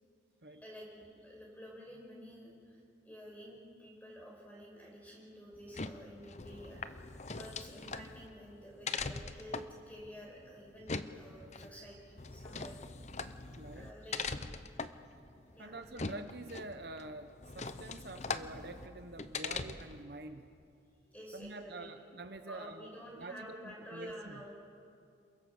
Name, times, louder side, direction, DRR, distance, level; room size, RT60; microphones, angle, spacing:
voice 1, 0.4-7.0 7.3-12.8 13.7-14.6 15.5-15.7 21.1-21.9 22.4-24.5, equal, 10° left, -2 dB, 6.0 m, -50 dB
sound 1, 5.5-20.0, left 4 dB, 40° left, 0.8 m, -42 dB
voice 2, 13.6-13.9 15.6-20.5 21.3-24.4, right 2 dB, 55° right, 8 dB, 0.9 m, -47 dB
28.0 x 23.0 x 7.2 m, 2.5 s
head